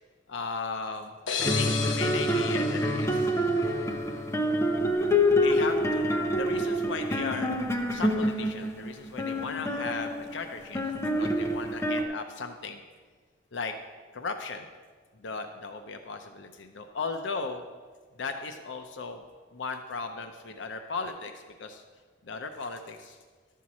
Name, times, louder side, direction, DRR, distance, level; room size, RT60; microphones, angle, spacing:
voice 1, 0.3-1.1 1.4-3.3 5.4-7.5 7.9-12.8 13.5-13.7 14.1-14.7 15.2-17.6 18.2-19.2 19.5-21.3 21.6-21.8 22.3-23.2, left 4 dB, 70° left, 6 dB, 0.6 m, -36 dB
sound 1, 1.3-4.0, left 6 dB, 85° left, 1.0 m, -35 dB
sound 2, 1.4-12.0, equal, 15° left, 0.8 m, -27 dB
12.5 x 4.6 x 7.1 m, 1.5 s
head